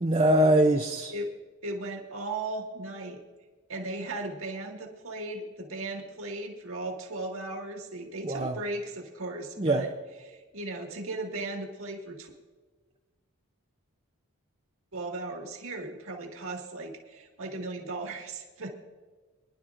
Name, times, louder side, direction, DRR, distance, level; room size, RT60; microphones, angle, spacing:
voice 1, 0.0-1.1 8.2-8.6 9.6-9.9, right 1 dB, 25° right, 3 dB, 0.6 m, -23 dB
voice 2, 1.6-3.2 3.7-9.9 10.2-12.3 14.9-18.7, right 2 dB, 65° right, 1 dB, 2.0 m, -37 dB
23.0 x 11.5 x 2.5 m, 1.3 s
head